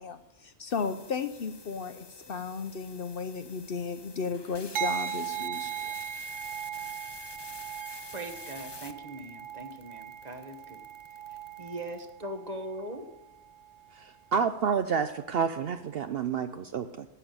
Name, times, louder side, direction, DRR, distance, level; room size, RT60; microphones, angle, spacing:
voice 1, 0.0-5.8, left 5 dB, 55° left, 10 dB, 0.8 m, -35 dB
sound 1, 0.7-12.1, left 4 dB, 30° left, 0.5 m, -48 dB
sound 2, 4.7-13.9 14.5-14.8, right 10 dB, 90° right, 1.1 m, -39 dB
voice 2, 8.1-10.8 11.3-13.1, right 1 dB, 35° right, 7 dB, 1.2 m, -40 dB
voice 3, 13.9-17.1, right 6 dB, 60° right, 10 dB, 0.7 m, -29 dB
12.5 x 6.4 x 9.0 m, 0.90 s
omnidirectional pair, 1.3 m